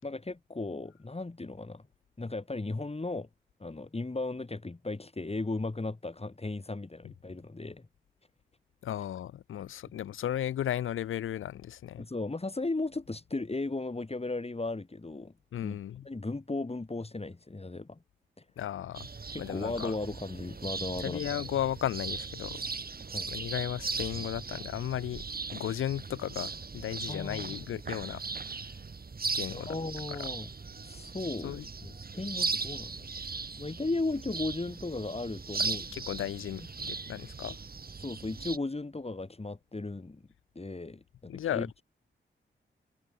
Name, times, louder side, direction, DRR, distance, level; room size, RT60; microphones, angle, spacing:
voice 1, 0.0-1.8 2.2-3.3 3.6-7.9 12.0-15.3 15.6-15.8 16.1-18.0 18.4-18.5 19.3-21.2 23.1-23.3 27.1-27.5 29.5-30.5 30.8-35.9 38.0-40.2 40.6-41.7, left 2 dB, 30° left, 4.1 m, -36 dB
voice 2, 8.8-12.1 15.5-16.1 18.6-19.1 19.4-20.0 21.0-22.6 23.3-25.2 25.5-28.2 29.3-29.8 30.1-30.3 31.4-31.7 35.6-37.6 41.3-41.8, left 11 dB, 85° left, 0.8 m, -35 dB
sound 1, 18.9-38.6, right 4 dB, 45° right, 2.8 m, -38 dB
supercardioid pair, 45°, 20 cm